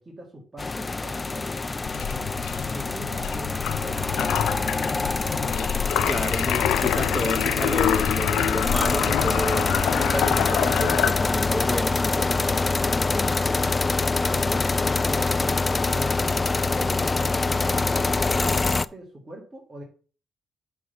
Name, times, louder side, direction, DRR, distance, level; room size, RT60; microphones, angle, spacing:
voice 1, 0.0-1.5 2.0-2.3 2.6-5.5 6.0-6.8 7.3-7.5 14.3-15.5 15.8-19.8, right 1 dB, 15° right, -2 dB, 2.0 m, -42 dB
sound 1, 0.6-18.9, left 3 dB, 25° left, 0.3 m, -25 dB
sound 2, 1.8-11.6, left 10 dB, 85° left, 0.5 m, -27 dB
voice 2, 6.1-13.7, equal, ahead, 6 dB, 1.0 m, -32 dB
8.3 x 3.6 x 5.6 m, 0.39 s
cardioid pair, 90°, 0 cm